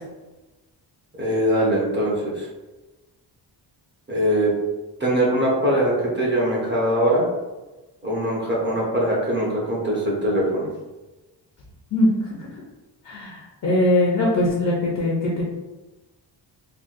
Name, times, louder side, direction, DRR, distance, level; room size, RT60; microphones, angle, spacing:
voice 1, 1.2-2.5 4.1-4.5 5.0-7.3 8.0-10.7, right 1 dB, 25° right, -4 dB, 0.8 m, -22 dB
voice 2, 13.0-15.4, left 2 dB, 45° left, -4 dB, 0.6 m, -21 dB
3.7 x 2.2 x 2.5 m, 1.1 s
wide cardioid pair, 180°, 44 cm